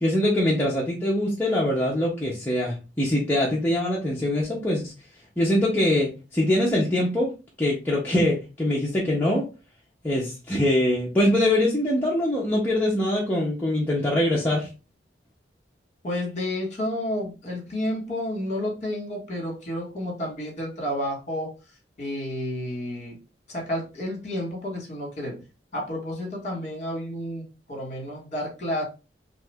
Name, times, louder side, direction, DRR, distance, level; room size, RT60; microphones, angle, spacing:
voice 1, 0.0-4.9 5.4-7.3 7.6-9.5 10.0-14.7, left 1 dB, 10° left, -5 dB, 0.5 m, -23 dB
voice 2, 16.0-21.5 22.0-23.2 23.5-25.4 25.7-28.8, left 1 dB, 40° left, -1 dB, 1.2 m, -31 dB
2.7 x 2.4 x 3.2 m, 0.31 s
head